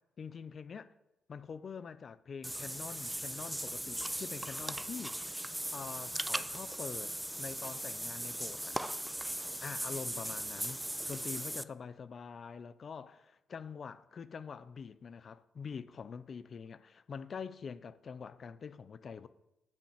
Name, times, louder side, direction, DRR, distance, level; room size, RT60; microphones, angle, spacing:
voice 1, 0.2-0.9 1.3-5.2 5.7-9.0 9.6-19.3, left 6 dB, 45° left, 0.6 m, -45 dB
Water / Bathtub (filling or washing), 2.4-11.6, right 1 dB, 5° right, 0.4 m, -38 dB
10.5 x 5.2 x 8.3 m
cardioid pair, 90°, 0 cm